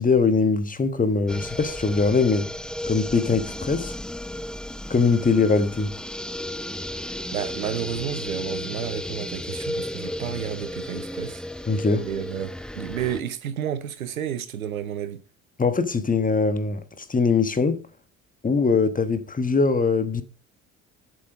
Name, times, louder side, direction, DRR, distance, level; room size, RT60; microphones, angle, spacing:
voice 1, 0.0-2.5 2.9-3.9 4.9-5.9 11.7-12.1 15.6-17.8 18.4-20.2, left 4 dB, 20° left, 1.4 m, -22 dB
sound 1, 1.3-13.2, left 1 dB, ahead, 0.6 m, -34 dB
voice 2, 6.9-11.4 12.0-15.2, right 9 dB, 85° right, 0.8 m, -31 dB
7.7 x 7.6 x 5.1 m
figure-of-eight pair, 55°, 41 cm